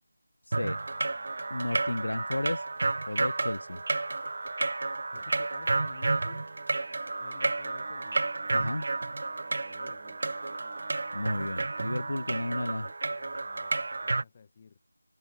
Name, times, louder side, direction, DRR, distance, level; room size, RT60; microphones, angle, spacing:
voice 1, 0.4-0.8 1.5-2.7 3.1-3.8 8.5-8.9 11.1-12.9, left 1 dB, 70° left, 0.4 m, -33 dB
sound 1, 0.5-14.2, right 3 dB, 45° right, 0.7 m, -31 dB
sound 2, 0.6-12.9, right 8 dB, 20° right, 4.3 m, -57 dB
voice 2, 5.1-6.5 7.2-8.2 9.7-10.2 12.2-12.7 13.1-14.8, left 6 dB, 25° left, 6.1 m, -52 dB
figure-of-eight pair, 165°, 0 cm